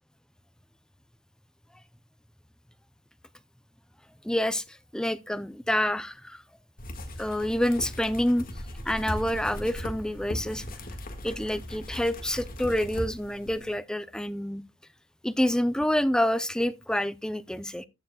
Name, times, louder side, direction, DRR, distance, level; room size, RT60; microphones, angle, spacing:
voice 1, 4.2-4.6 4.9-6.4 7.2-8.5 8.8-10.8 11.2-14.6 15.2-17.8, left 1 dB, 5° left, 0.5 m, -27 dB
sound 1, 6.8-13.8, left 1 dB, 45° left, 1.7 m, -38 dB
14.0 x 7.2 x 2.2 m
head